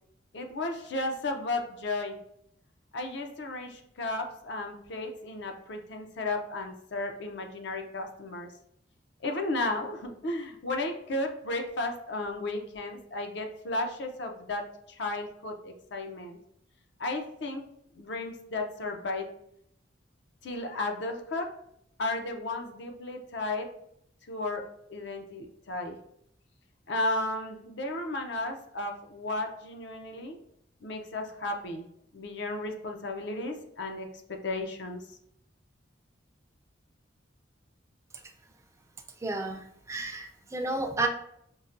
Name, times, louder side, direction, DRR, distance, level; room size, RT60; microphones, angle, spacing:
voice 1, 0.3-2.2 2.9-8.5 9.2-16.4 17.0-17.6 18.0-19.3 20.4-21.5 22.0-23.7 24.3-26.0 26.9-30.4 30.8-31.9 32.1-35.0, left 2 dB, 65° left, 4 dB, 0.6 m, -34 dB
voice 2, 39.2-41.1, right 2 dB, 15° right, 4 dB, 0.4 m, -32 dB
5.5 x 2.1 x 2.5 m, 0.73 s
head